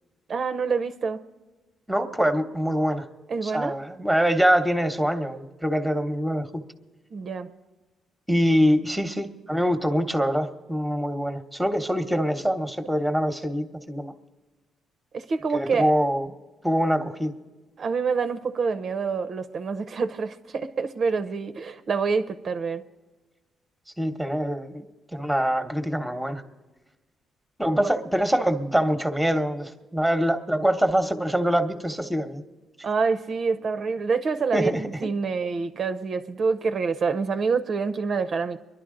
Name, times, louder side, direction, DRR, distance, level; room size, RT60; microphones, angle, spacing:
voice 1, 0.3-1.2 3.3-3.8 7.1-7.5 15.1-15.9 17.8-22.8 27.8-27.9 32.8-38.6, right 5 dB, 50° right, 10 dB, 0.6 m, -27 dB
voice 2, 1.9-3.0 3.4-6.6 8.3-14.1 15.5-16.3 16.6-17.3 24.0-24.9 25.1-26.4 27.6-32.4 34.5-34.8, equal, ahead, 8 dB, 1.0 m, -24 dB
24.0 x 11.0 x 3.8 m, 1.2 s
cardioid pair, 90°, 0 cm